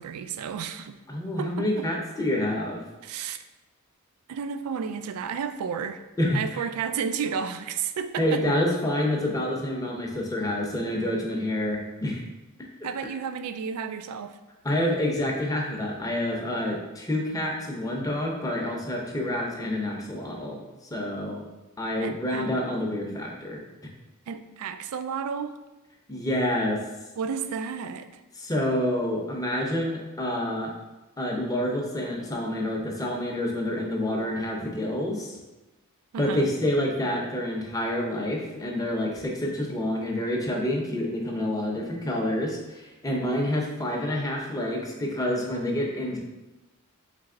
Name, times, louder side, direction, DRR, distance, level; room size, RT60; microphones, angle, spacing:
voice 1, 0.0-1.0 1.4-1.9 3.0-3.4 4.3-6.0 6.3-8.4 12.8-14.4 22.0-22.5 24.3-25.6 27.2-28.2 36.1-36.5, right 6 dB, 80° right, 11 dB, 0.3 m, -32 dB
voice 2, 1.1-2.8 6.2-6.4 8.2-12.2 14.6-20.6 20.9-21.4 21.8-23.6 26.1-26.8 28.4-30.7 31.2-35.4 36.2-46.2, left 1 dB, 15° left, 0 dB, 0.6 m, -28 dB
3.9 x 3.3 x 3.7 m, 1.1 s
head